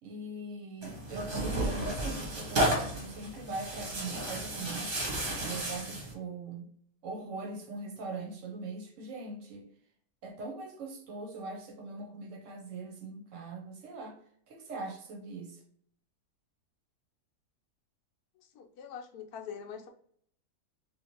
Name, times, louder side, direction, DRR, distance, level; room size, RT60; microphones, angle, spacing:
voice 1, 0.0-4.9 5.4-6.7 7.0-9.7 10.2-14.2 14.5-15.6, right 3 dB, 60° right, 1.0 m, -41 dB
Tearing, 0.8-6.1, right 1 dB, 40° right, 1.0 m, -33 dB
voice 2, 18.6-19.9, left 7 dB, 75° left, 1.1 m, -43 dB
3.1 x 2.5 x 2.8 m
omnidirectional pair, 1.6 m